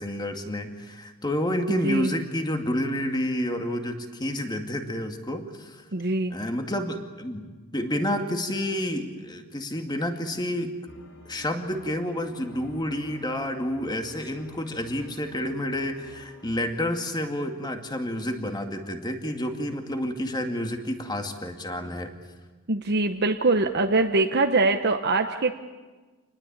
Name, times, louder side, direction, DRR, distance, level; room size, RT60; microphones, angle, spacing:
voice 1, 0.0-5.9 6.3-10.8 11.3-22.1, left 1 dB, 20° left, 5 dB, 2.1 m, -29 dB
voice 2, 5.9-6.3 22.7-25.5, right 3 dB, 50° right, 5 dB, 1.0 m, -23 dB
sound 1, 10.9-16.7, equal, 60° left, 5.2 m, -51 dB
27.5 x 20.0 x 8.8 m, 1.3 s
head